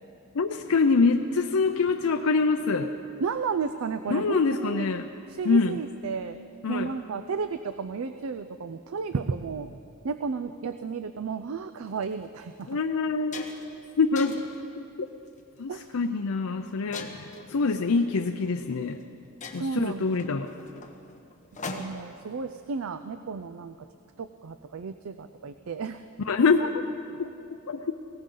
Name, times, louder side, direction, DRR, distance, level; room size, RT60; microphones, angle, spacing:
voice 1, 0.3-2.9 4.1-5.1 5.4-5.8 6.6-6.9 12.7-13.5 14.0-14.4 15.0-15.1 15.6-19.0 19.5-20.5 26.3-26.9 27.2-28.0, left 4 dB, 75° left, 5 dB, 0.5 m, -25 dB
voice 2, 3.2-4.9 5.3-6.4 6.7-9.8 10.0-12.8 15.7-16.0 19.5-20.1 21.7-23.9 24.2-26.0, right 5 dB, 70° right, 10 dB, 0.5 m, -33 dB
sound 1, 11.9-12.0 12.6-12.7 13.0-13.8 14.2-14.6 15.3-15.6 16.9-17.5 18.6-18.7 19.0-19.1 19.4-22.2, left 3 dB, 35° left, 1.1 m, -41 dB
20.0 x 18.0 x 3.9 m, 2.6 s
head